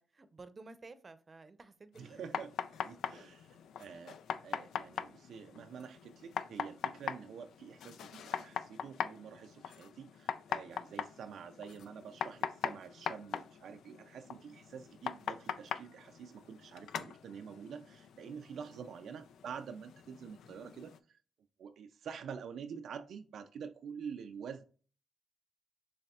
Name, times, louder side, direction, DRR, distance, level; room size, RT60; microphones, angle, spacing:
voice 1, 0.0-2.2 10.7-11.0 18.6-18.9, right 3 dB, 40° right, 0.6 m, -54 dB
sound 1, 1.9-21.0, left 8 dB, 90° left, 0.3 m, -42 dB
voice 2, 2.0-2.5 2.8-21.2 21.6-24.6, right 7 dB, 80° right, 0.3 m, -47 dB
6.8 x 3.3 x 2.3 m
cardioid pair, 75°, 0 cm